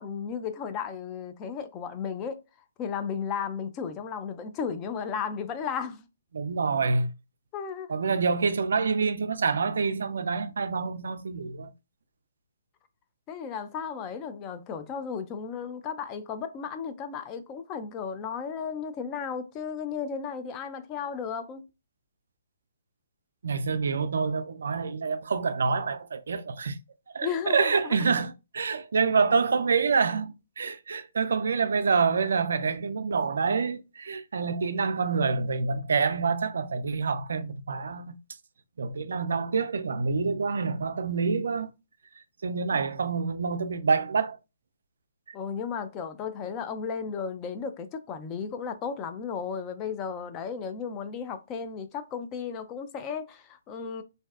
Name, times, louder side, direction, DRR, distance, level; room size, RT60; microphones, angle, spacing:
voice 1, 0.0-2.4 2.8-6.1 7.5-7.9 13.3-21.6 27.2-28.0 45.3-54.0, left 6 dB, 25° left, 0.3 m, -34 dB
voice 2, 6.3-7.1 7.9-11.7 23.4-26.8 27.1-38.2 38.8-41.7 42.4-44.4, right 5 dB, 70° right, 0.3 m, -27 dB
2.5 x 2.2 x 2.3 m
hypercardioid pair, 140°, 0 cm